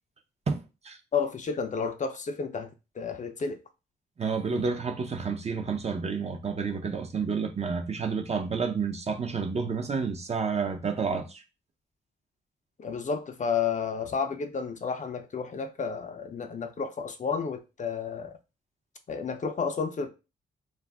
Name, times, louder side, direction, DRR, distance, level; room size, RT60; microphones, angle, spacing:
voice 1, 0.5-1.0 4.2-11.4, right 5 dB, 35° right, 0.5 m, -30 dB
voice 2, 1.1-2.7 3.0-3.6 12.8-18.4 19.1-20.1, left 5 dB, 40° left, 0.5 m, -31 dB
2.3 x 2.0 x 3.4 m
cardioid pair, 70°, 19 cm